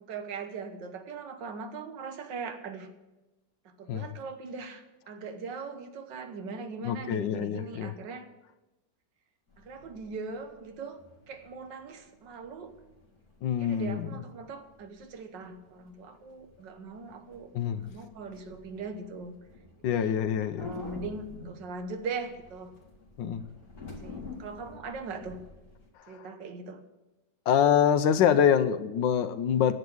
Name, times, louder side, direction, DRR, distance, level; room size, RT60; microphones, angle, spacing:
voice 1, 0.0-2.9 3.7-8.3 9.6-12.8 13.6-17.5 17.8-19.3 19.9-20.1 20.6-22.7 23.8-25.4 26.1-26.8, right 4 dB, 80° right, 7 dB, 1.8 m, -40 dB
voice 2, 6.8-7.9 13.4-14.2 17.5-17.9 19.8-20.7 23.2-23.4 26.0-26.3 27.5-29.7, left 8 dB, 90° left, 12 dB, 1.4 m, -25 dB
sound 1, 9.5-25.9, left 3 dB, 50° left, 2.7 m, -48 dB
10.5 x 7.9 x 7.8 m, 1.0 s
omnidirectional pair, 1.9 m